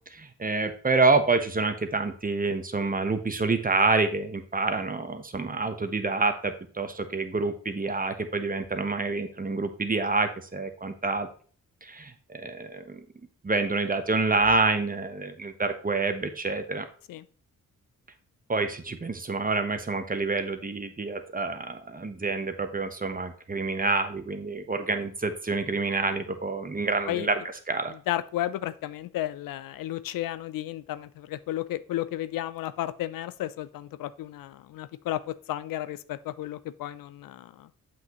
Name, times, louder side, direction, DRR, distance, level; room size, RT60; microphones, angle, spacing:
voice 1, 0.1-11.3 11.8-13.0 13.4-16.9 18.5-27.4 27.7-27.9, right 3 dB, 25° right, 1.1 m, -27 dB
voice 2, 28.1-37.7, left 13 dB, 80° left, 0.5 m, -33 dB
7.6 x 5.9 x 3.0 m
cardioid pair, 65°, 33 cm